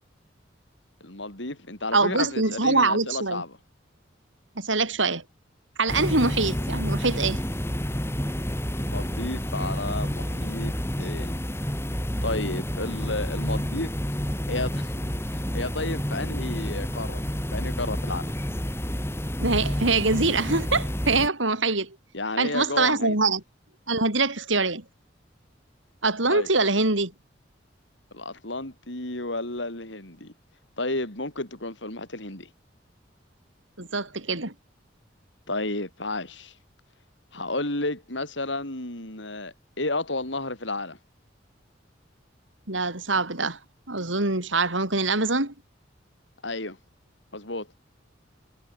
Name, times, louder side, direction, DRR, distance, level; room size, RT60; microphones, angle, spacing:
voice 1, 1.0-3.6 8.8-11.3 12.2-14.0 14.5-15.0 15.3-17.2 17.5-18.3 22.1-23.2 26.3-26.5 28.1-30.3 30.8-32.5 35.5-36.5 37.3-41.0 46.4-46.8 47.3-47.7, left 2 dB, 75° left, 5.6 m, -32 dB
voice 2, 1.9-3.4 4.6-5.2 5.8-7.4 19.4-22.0 22.4-23.4 23.9-24.8 26.0-27.1 33.8-34.5 42.7-43.6 43.9-45.5, right 3 dB, 90° right, 5.2 m, -24 dB
sound 1, 5.9-21.3, equal, 15° left, 5.5 m, -29 dB
head